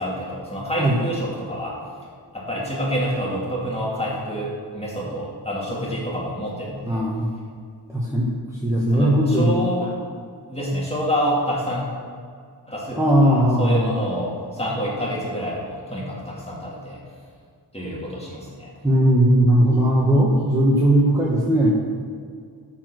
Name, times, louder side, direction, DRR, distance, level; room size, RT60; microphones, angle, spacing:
voice 1, 0.0-1.8 2.3-7.0 8.9-9.9 10.5-11.9 12.7-17.0 17.7-18.7, equal, 15° left, -4 dB, 2.7 m, -27 dB
voice 2, 6.9-7.3 7.9-9.6 12.9-13.9 18.8-21.8, right 1 dB, 5° right, -5 dB, 1.3 m, -18 dB
13.0 x 4.7 x 6.1 m, 2.2 s
wide cardioid pair, 120°, 42 cm